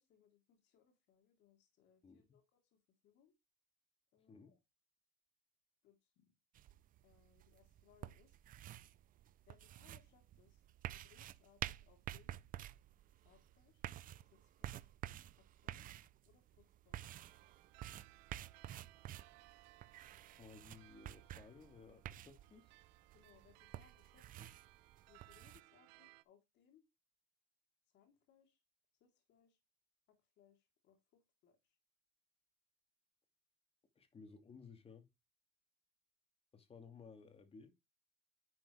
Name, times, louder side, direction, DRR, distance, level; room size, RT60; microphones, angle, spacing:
voice 1, 0.0-3.3 4.1-4.5 5.8-6.3 7.0-8.4 9.5-10.6 10.9-12.4 13.2-13.9 14.3-14.9 15.4-16.0 16.3-17.1 23.1-24.6 25.1-26.8 27.9-28.6 29.0-29.6 30.1-31.8, left 8 dB, 55° left, 3.4 m, -71 dB
sound 1, 6.6-25.6, right 12 dB, 40° right, 0.6 m, -51 dB
sound 2, 17.1-26.2, right 21 dB, 80° right, 0.7 m, -65 dB
voice 2, 20.4-22.7 34.0-35.1 36.5-37.7, left 5 dB, 25° left, 2.4 m, -58 dB
11.0 x 6.0 x 3.4 m
supercardioid pair, 110°, 21 cm